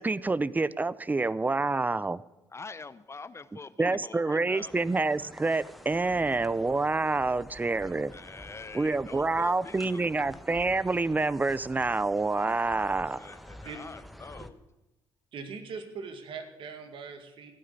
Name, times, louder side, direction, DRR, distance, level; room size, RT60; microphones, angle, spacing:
voice 1, 0.0-2.2 3.8-8.1 8.7-13.3, right 3 dB, 20° right, 19 dB, 0.5 m, -27 dB
voice 2, 2.5-4.7 5.2-5.3 6.1-6.3 7.7-10.4 13.1-14.6, left 4 dB, 30° left, 15 dB, 0.6 m, -45 dB
sound 1, 4.6-14.5, equal, ahead, 1.1 m, -49 dB
voice 3, 15.3-17.5, right 5 dB, 65° right, 7 dB, 2.0 m, -41 dB
15.0 x 9.5 x 6.8 m, 0.98 s
supercardioid pair, 65°, 9 cm